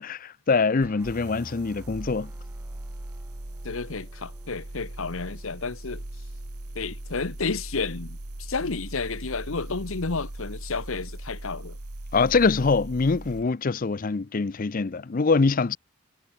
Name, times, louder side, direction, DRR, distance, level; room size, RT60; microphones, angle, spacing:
voice 1, 0.0-2.3 12.1-15.8, left 4 dB, 40° left, 0.5 m, -24 dB
sound 1, 0.7-11.2, right 1 dB, 10° right, 7.2 m, -59 dB
sound 2, 0.8-13.5, right 1 dB, 85° right, 2.2 m, -39 dB
voice 2, 3.6-6.0 6.7-11.8, left 4 dB, 65° left, 1.1 m, -31 dB
head